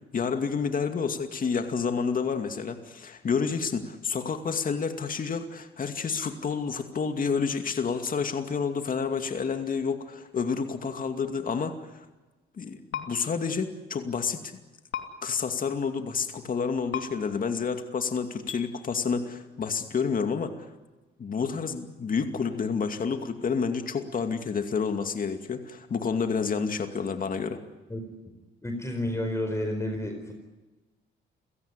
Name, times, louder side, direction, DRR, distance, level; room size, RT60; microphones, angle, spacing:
voice 1, 0.0-12.1 12.5-14.4 15.2-20.5 21.2-27.6, left 5 dB, 45° left, 6 dB, 2.4 m, -29 dB
sound 1, 12.9-13.1 14.9-15.0 16.9-17.0 18.5-18.6, left 9 dB, 80° left, 2.8 m, -32 dB
voice 2, 28.6-30.3, left 1 dB, 15° left, 5 dB, 4.7 m, -30 dB
29.5 x 17.0 x 9.8 m, 1.2 s
cardioid pair, 90°, 20 cm